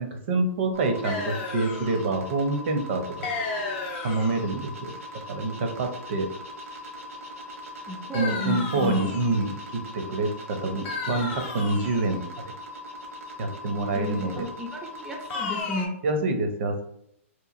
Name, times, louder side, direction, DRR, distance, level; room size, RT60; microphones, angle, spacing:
voice 1, 0.0-3.3 4.0-4.9 5.3-6.3 8.1-12.2 13.4-14.5 16.0-16.8, right 2 dB, 55° right, 5 dB, 0.6 m, -27 dB
sound 1, 0.7-15.6, left 1 dB, 80° right, 1.0 m, -41 dB
sound 2, 1.0-2.0 3.2-4.5 8.1-9.5 10.8-12.1 15.3-15.9, left 4 dB, 40° left, 0.8 m, -33 dB
voice 2, 7.9-9.1 13.9-16.0, left 2 dB, 5° right, 0 dB, 0.3 m, -33 dB
2.9 x 2.3 x 2.4 m, 0.74 s
hypercardioid pair, 130°, 7 cm